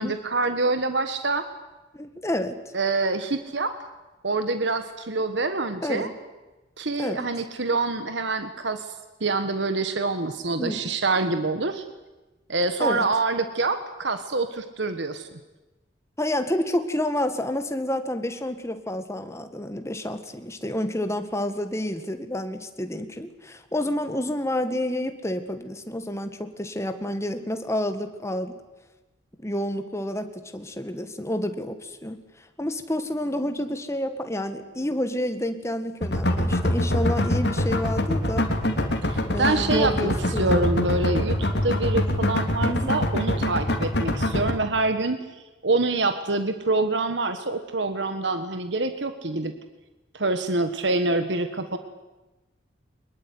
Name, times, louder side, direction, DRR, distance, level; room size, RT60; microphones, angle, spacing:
voice 1, 0.0-1.4 2.7-3.7 4.2-6.1 6.8-8.9 9.2-11.8 12.5-15.3 39.0-45.2 45.6-49.5 50.1-51.8, right 3 dB, 70° right, 9 dB, 1.5 m, -26 dB
voice 2, 1.9-2.6 5.8-6.1 7.0-7.3 10.6-10.9 12.8-13.1 16.2-28.6 29.4-32.2 32.6-38.5 39.3-40.6 42.6-43.0, left 1 dB, 15° left, 8 dB, 1.8 m, -29 dB
sound 1, 36.0-44.5, left 1 dB, 60° left, 3.1 m, -24 dB
23.5 x 21.5 x 9.6 m, 1.1 s
head